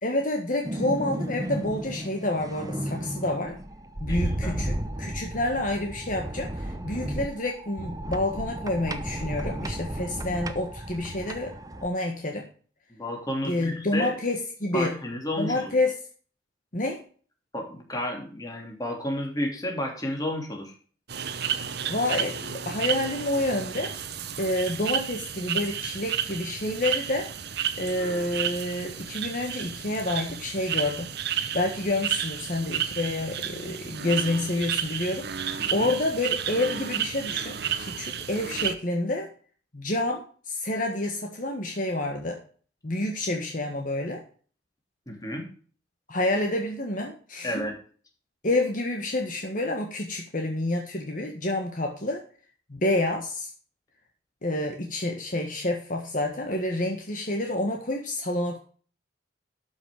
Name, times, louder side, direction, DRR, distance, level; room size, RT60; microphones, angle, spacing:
voice 1, 0.0-3.6 4.0-11.5 11.8-12.4 13.4-15.0 15.4-15.9 16.7-17.0 21.9-23.9 24.4-27.3 27.8-31.1 31.5-35.3 35.7-39.3 39.7-42.4 42.8-44.2 46.1-47.7 48.4-52.2 52.7-53.5 54.4-58.6, left 1 dB, 45° left, 2 dB, 1.5 m, -28 dB
sound 1, 0.6-11.9, right 1 dB, 20° right, 0.8 m, -33 dB
voice 2, 4.0-4.6 12.9-14.2 14.7-15.7 17.5-20.7 35.6-35.9 45.1-45.5 47.4-47.8, left 1 dB, 20° left, 1 dB, 2.9 m, -32 dB
sound 2, 21.1-38.7, right 9 dB, 60° right, 1.0 m, -32 dB
12.5 x 6.0 x 4.9 m, 0.42 s
head